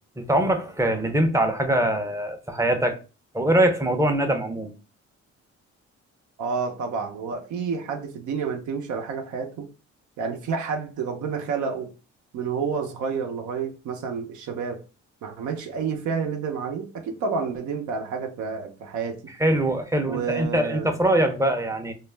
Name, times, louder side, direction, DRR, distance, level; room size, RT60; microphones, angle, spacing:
voice 1, 0.2-3.0 3.3-4.7 19.4-21.9, right 1 dB, 10° right, 0.5 m, -23 dB
voice 2, 6.4-9.7 10.2-11.9 12.3-14.8 15.2-19.2 20.1-20.9, right 5 dB, 75° right, 0.6 m, -29 dB
2.4 x 2.0 x 3.2 m
cardioid pair, 90°, 30 cm